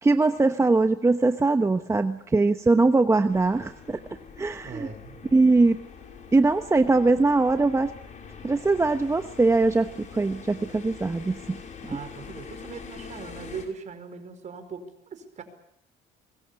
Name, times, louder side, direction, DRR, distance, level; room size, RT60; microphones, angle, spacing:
voice 1, 0.0-4.0 4.4-4.9 5.3-5.8 6.3-7.9 8.4-11.6, right 3 dB, 15° right, 8 dB, 1.0 m, -21 dB
sound 1, 3.3-13.6, left 5 dB, 45° left, 5.6 m, -44 dB
voice 2, 4.6-5.2 11.8-15.4, right 5 dB, 45° right, 9 dB, 4.9 m, -40 dB
23.5 x 21.5 x 8.6 m, 0.74 s
cardioid pair, 110°, 17 cm